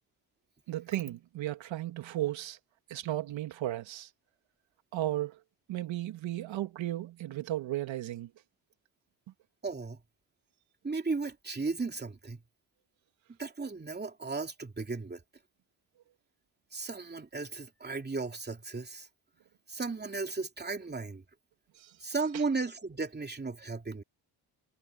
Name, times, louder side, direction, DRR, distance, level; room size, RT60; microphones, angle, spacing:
voice 1, 0.7-2.6 2.9-4.1 4.9-5.4 5.7-8.3 21.8-21.9, right 14 dB, 70° right, 2.5 m, -35 dB
voice 2, 9.6-10.0 10.8-12.4 13.4-15.2 16.7-19.1 19.7-21.2 22.0-24.0, right 4 dB, 20° right, 3.0 m, -35 dB
cardioid pair, 85°, 47 cm